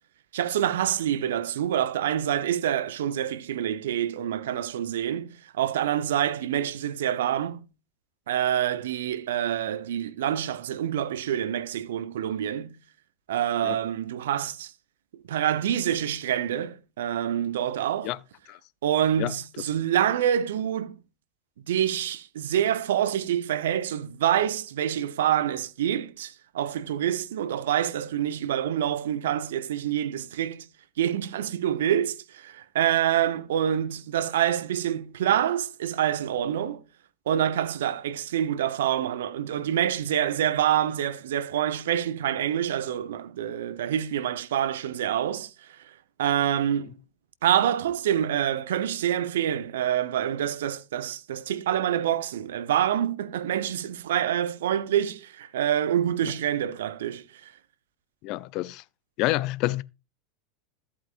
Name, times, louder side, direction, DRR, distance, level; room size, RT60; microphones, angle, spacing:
voice 1, 0.3-7.6 8.3-12.7 13.3-14.7 15.3-18.1 18.8-21.0 21.7-30.7 31.0-32.2 32.4-36.8 37.3-45.5 46.2-47.0 47.4-57.2, right 10 dB, 70° right, 0.7 m, -26 dB
voice 2, 58.2-58.8 59.2-59.8, left 18 dB, 50° left, 0.5 m, -28 dB
14.0 x 8.4 x 2.5 m
hypercardioid pair, 85°, 0 cm